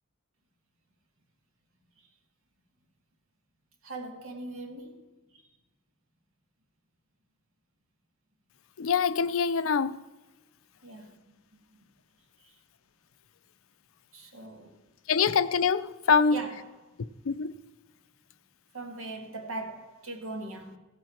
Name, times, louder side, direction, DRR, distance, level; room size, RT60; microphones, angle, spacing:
voice 1, 3.8-5.1 5.3-5.5 10.8-11.2 11.5-11.9 12.4-12.6 14.1-14.8 16.3-16.9 18.7-20.8, right 2 dB, 85° right, 2.0 m, -41 dB
voice 2, 8.8-10.0 15.1-16.4 17.3-17.5, left 6 dB, 85° left, 0.5 m, -24 dB
16.0 x 7.8 x 4.4 m
head